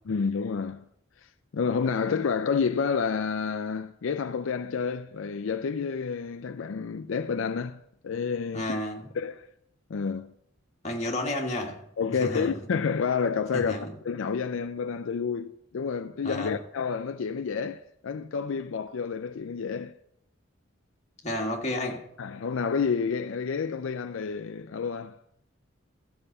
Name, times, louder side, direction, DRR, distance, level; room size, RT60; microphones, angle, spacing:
voice 1, 0.1-0.8 1.2-8.8 9.2-9.5 9.9-10.3 12.0-13.8 14.0-19.9 22.2-25.1, left 5 dB, 75° left, 0.4 m, -29 dB
voice 2, 8.5-9.1 10.8-11.8 12.2-12.6 13.5-13.9 16.2-16.6 21.2-22.1, left 1 dB, 35° left, 1.7 m, -31 dB
13.5 x 5.6 x 6.7 m
head